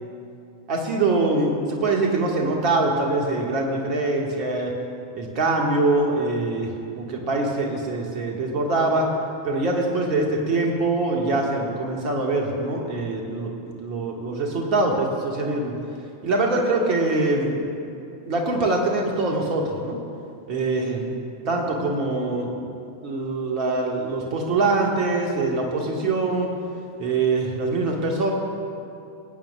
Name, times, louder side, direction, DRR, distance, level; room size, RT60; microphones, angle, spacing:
voice 1, 0.7-4.7 5.1-9.1 9.4-15.8 16.2-17.7 18.2-20.0 20.5-22.6 23.0-26.5 27.0-28.3, right 2 dB, 40° right, 0 dB, 1.8 m, -24 dB
21.0 x 9.1 x 2.5 m, 2.6 s
figure-of-eight pair, 90°, 0 cm